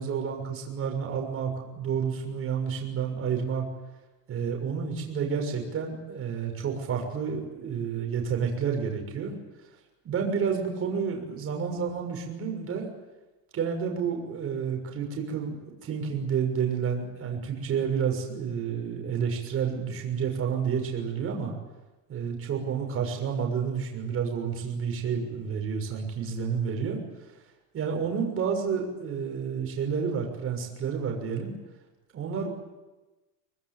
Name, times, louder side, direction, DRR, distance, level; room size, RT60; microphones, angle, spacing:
voice 1, 0.0-3.6 4.3-9.3 10.0-12.9 13.5-21.5 22.1-27.0 27.7-31.5 32.1-32.5, right 6 dB, 30° right, 2 dB, 6.4 m, -30 dB
25.5 x 20.0 x 9.4 m, 1.1 s
supercardioid pair, 155°, 46 cm